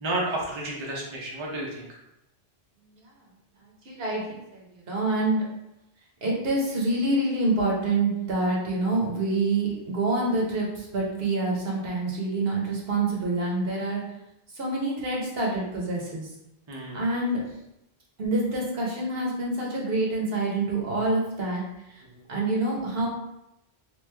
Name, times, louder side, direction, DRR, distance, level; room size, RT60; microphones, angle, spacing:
voice 1, 0.0-1.9 16.7-17.0 22.1-22.2, right 2 dB, 30° right, -3 dB, 0.6 m, -31 dB
voice 2, 3.8-5.4 6.2-14.1 14.5-16.3 16.9-17.5 18.2-21.6 21.9-22.0 22.3-23.1, right 2 dB, 65° right, -3 dB, 1.1 m, -26 dB
3.1 x 2.5 x 3.4 m, 0.85 s
omnidirectional pair, 1.1 m